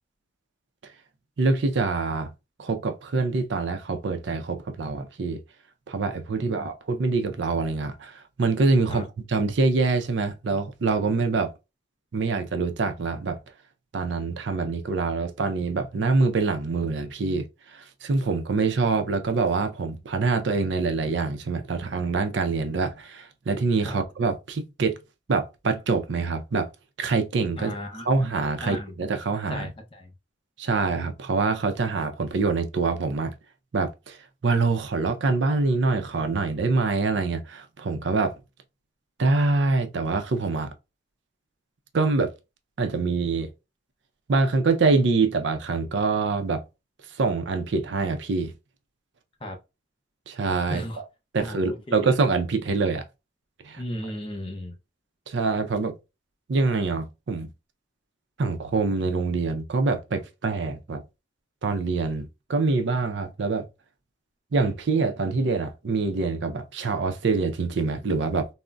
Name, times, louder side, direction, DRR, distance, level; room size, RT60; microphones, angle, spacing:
voice 1, 1.4-2.3 2.6-5.4 5.9-11.5 12.1-13.4 13.9-17.4 17.7-25.0 25.3-26.7 27.0-27.7 28.1-29.7 30.6-33.3 33.7-34.2 34.4-38.3 39.2-40.7 41.9-42.3 42.8-43.5 44.3-46.6 47.2-48.5 50.3-50.8 51.3-53.0 53.6-53.8 55.3-55.9 56.5-57.5 58.4-61.0 61.6-63.7 64.5-68.5, right 3 dB, 65° right, 0.5 m, -25 dB
voice 2, 27.6-28.1 28.6-28.9 29.5-30.1 49.4-49.6 50.7-51.0 51.4-52.0 53.8-54.7, left 1 dB, 30° left, 0.6 m, -35 dB
3.7 x 2.1 x 2.2 m
head